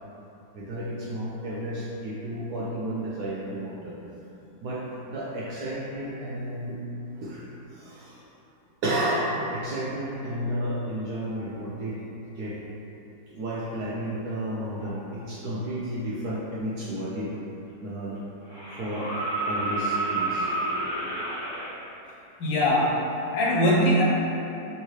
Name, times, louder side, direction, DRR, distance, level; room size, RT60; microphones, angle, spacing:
voice 1, 0.5-3.9 4.6-6.8 7.1-7.4 7.7-8.2 8.8-12.1 12.3-12.6 13.3-17.3 17.8-18.2 18.8-19.1 19.5-20.5, right 1 dB, 70° right, -7 dB, 0.9 m, -32 dB
sound 1, 18.5-21.7 23.5-23.6, right 2 dB, 25° right, 0.6 m, -29 dB
voice 2, 22.4-23.1 23.3-24.0, equal, 85° left, -5 dB, 1.5 m, -21 dB
5.5 x 2.3 x 3.1 m, 2.8 s
omnidirectional pair, 2.1 m